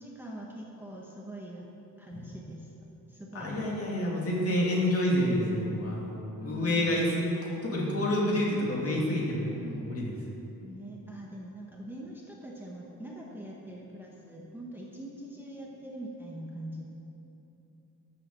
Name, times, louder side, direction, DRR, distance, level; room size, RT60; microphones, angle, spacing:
voice 1, 0.0-1.6 2.0-3.7 6.4-7.0 9.5-9.9 10.6-16.8, right 1 dB, 5° right, -3 dB, 1.0 m, -43 dB
voice 2, 3.3-7.3 7.6-10.1, left 1 dB, 40° left, -3 dB, 2.6 m, -28 dB
11.5 x 7.9 x 7.8 m, 2.9 s
wide cardioid pair, 170°, 35 cm